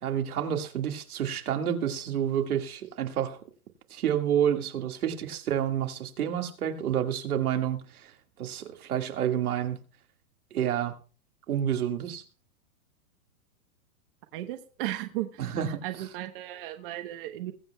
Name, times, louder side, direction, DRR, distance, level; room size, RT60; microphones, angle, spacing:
voice 1, 0.0-3.4 3.9-8.1 8.4-9.8 10.5-10.9 11.5-12.2 15.4-15.8, right 9 dB, 85° right, 2.1 m, -29 dB
voice 2, 14.3-15.6 15.8-17.5, right 15 dB, 40° right, 1.1 m, -35 dB
21.5 x 8.0 x 2.3 m
hypercardioid pair, 160°, 43 cm